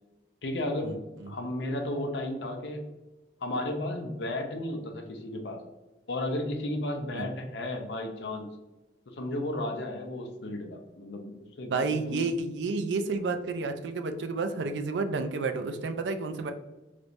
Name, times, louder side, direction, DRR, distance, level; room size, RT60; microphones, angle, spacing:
voice 1, 0.4-1.0 1.3-2.9 3.4-5.6 6.1-8.5 9.2-12.2, left 1 dB, 70° left, 3 dB, 0.6 m, -33 dB
voice 2, 11.7-16.5, right 3 dB, 80° right, 8 dB, 0.4 m, -30 dB
3.2 x 3.1 x 2.5 m, 1.1 s
head